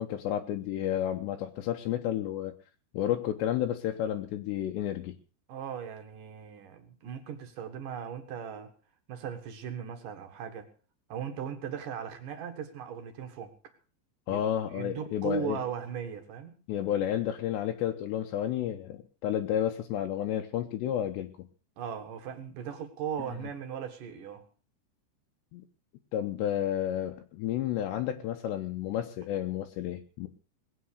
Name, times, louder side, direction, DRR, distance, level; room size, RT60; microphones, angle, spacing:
voice 1, 0.0-2.5 2.9-5.1 14.3-15.6 16.7-21.5 25.5-25.6 26.1-30.3, left 11 dB, 80° left, 4 dB, 3.1 m, -31 dB
voice 2, 5.5-8.7 9.1-10.7 11.1-13.5 14.3-14.4 14.7-16.6 21.8-24.4, right 8 dB, 60° right, 7 dB, 2.7 m, -38 dB
19.5 x 9.1 x 6.6 m, 0.38 s
omnidirectional pair, 5.1 m